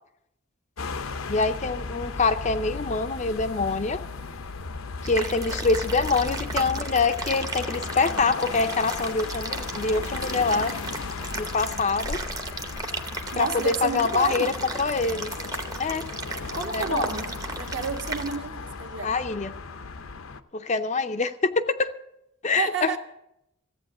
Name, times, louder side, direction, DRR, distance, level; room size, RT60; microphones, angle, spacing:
sound 1, 0.8-20.4, left 4 dB, 75° left, 0.7 m, -35 dB
voice 1, 1.3-4.0 5.0-10.7 11.4-12.2 13.3-14.5 14.8-15.3 15.8-16.1 16.7-17.1 19.0-19.5 20.5-21.9 22.4-23.0, left 4 dB, 35° left, 0.5 m, -25 dB
sound 2, 5.1-18.4, right 3 dB, 15° right, 0.8 m, -35 dB
voice 2, 13.3-14.5 16.5-19.1 22.6-23.0, right 5 dB, 55° right, 1.4 m, -31 dB
14.5 x 8.5 x 7.8 m
head